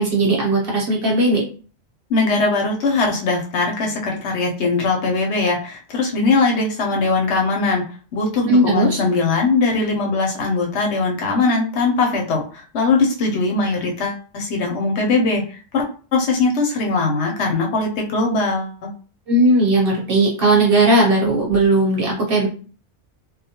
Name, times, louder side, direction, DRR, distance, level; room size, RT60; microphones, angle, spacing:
voice 1, 0.0-1.5 8.5-9.0 19.3-22.5, right 2 dB, 55° right, -3 dB, 1.0 m, -17 dB
voice 2, 2.1-7.8 8.1-15.4 15.7-15.8 16.1-18.9, left 3 dB, 70° left, 1 dB, 0.9 m, -20 dB
2.2 x 2.2 x 2.7 m, 0.39 s
omnidirectional pair, 1.2 m